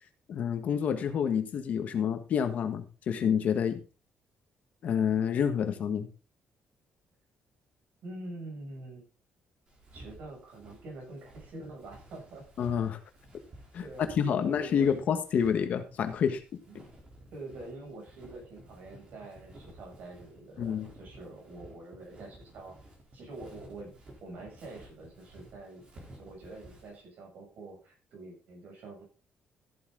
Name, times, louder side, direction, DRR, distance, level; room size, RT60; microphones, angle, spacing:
voice 1, 0.3-3.8 4.8-6.1 12.6-13.0 13.7-13.8 14.2-16.4 16.7-16.8 20.6-20.9, left 7 dB, 50° left, 7 dB, 1.5 m, -28 dB
voice 2, 8.0-9.1 9.9-12.4 13.8-14.8 16.7-16.9 17.3-22.8 23.1-23.9 24.2-25.9 26.2-29.0, right 2 dB, 65° right, 0 dB, 7.2 m, -46 dB
Walk footsteps, 9.7-27.0, right 1 dB, 30° right, 3.6 m, -53 dB
14.0 x 8.3 x 3.9 m, 0.35 s
cardioid pair, 165°, 3 cm